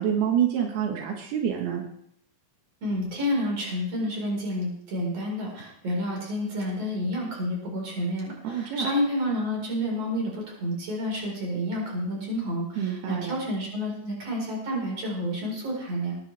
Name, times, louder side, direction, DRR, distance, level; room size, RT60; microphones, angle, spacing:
voice 1, 0.0-1.8 8.4-8.9 12.8-13.4, right 9 dB, 85° right, 1 dB, 3.5 m, -27 dB
voice 2, 2.8-16.2, equal, 40° right, -2 dB, 5.7 m, -29 dB
20.5 x 10.5 x 3.5 m, 0.67 s
omnidirectional pair, 4.3 m